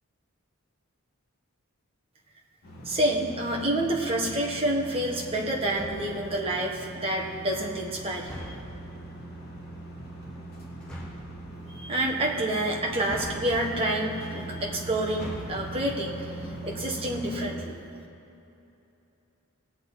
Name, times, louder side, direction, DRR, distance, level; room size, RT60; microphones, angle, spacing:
sound 1, 2.6-17.5, right 1 dB, 45° left, 2.7 m, -41 dB
voice 1, 2.8-8.5 11.7-16.2 16.6-17.7, right 1 dB, 25° right, -2 dB, 1.3 m, -28 dB
sound 2, 5.7-6.3 8.2-8.8 10.8-11.3 13.0-13.8 15.0-15.7, equal, 5° left, 1.4 m, -41 dB
18.5 x 7.9 x 4.1 m, 2.9 s
head